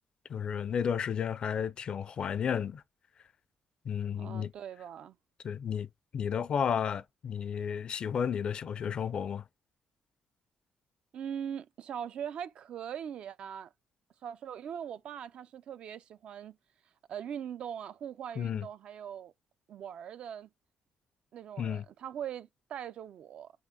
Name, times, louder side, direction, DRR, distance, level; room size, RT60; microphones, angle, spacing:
voice 1, 0.3-2.8 3.8-4.5 5.4-9.4 18.4-18.7 21.6-21.9, left 7 dB, 55° left, 0.4 m, -32 dB
voice 2, 4.2-5.2 11.1-13.7 14.2-16.6 17.1-19.3 19.7-20.5 21.3-23.5, right 9 dB, 65° right, 0.3 m, -41 dB
5.0 x 3.6 x 2.2 m
cardioid pair, 105°, 2 cm